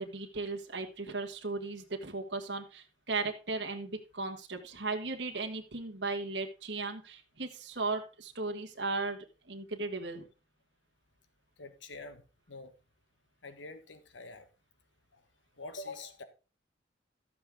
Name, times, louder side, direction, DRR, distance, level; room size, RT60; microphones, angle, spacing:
voice 1, 0.0-10.3, right 3 dB, 65° right, 1.6 m, -36 dB
voice 2, 11.6-12.2 12.5-12.8 13.4-14.5 15.1-15.2 15.6-16.2, left 3 dB, 85° left, 1.4 m, -45 dB
12.5 x 7.8 x 3.6 m
head